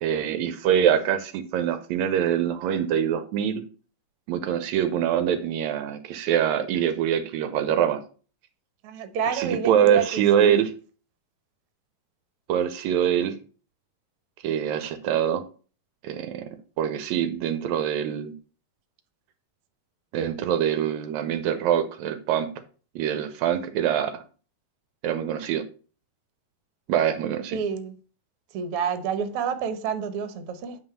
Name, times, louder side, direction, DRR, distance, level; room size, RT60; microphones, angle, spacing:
voice 1, 0.0-3.6 4.3-8.0 9.4-10.7 12.5-13.4 14.4-15.4 16.0-16.5 16.8-18.3 20.1-22.5 23.0-24.2 25.0-25.6 26.9-27.6, right 9 dB, 80° right, 1.9 m, -24 dB
voice 2, 8.8-10.6 13.2-13.3 27.5-28.0 28.5-30.8, right 6 dB, 65° right, 1.5 m, -29 dB
9.0 x 3.4 x 5.5 m
omnidirectional pair, 3.4 m